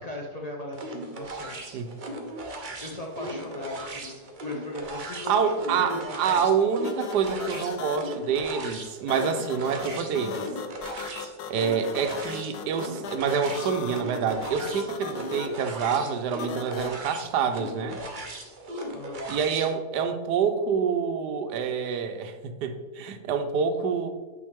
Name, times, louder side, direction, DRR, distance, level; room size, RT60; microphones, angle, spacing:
voice 1, 0.0-1.7 2.8-6.5 18.9-19.3, left 1 dB, 65° left, -1 dB, 0.4 m, -38 dB
sound 1, 0.7-19.7, right 1 dB, 45° right, 0.7 m, -38 dB
voice 2, 5.3-10.5 11.5-18.0 19.3-24.1, right 6 dB, 90° right, 8 dB, 1.3 m, -27 dB
sound 2, 5.9-6.0 6.8-8.0 9.1-15.5 16.4-16.9, left 7 dB, 90° left, 1.2 m, -37 dB
8.5 x 4.4 x 3.5 m, 1.4 s
omnidirectional pair, 1.7 m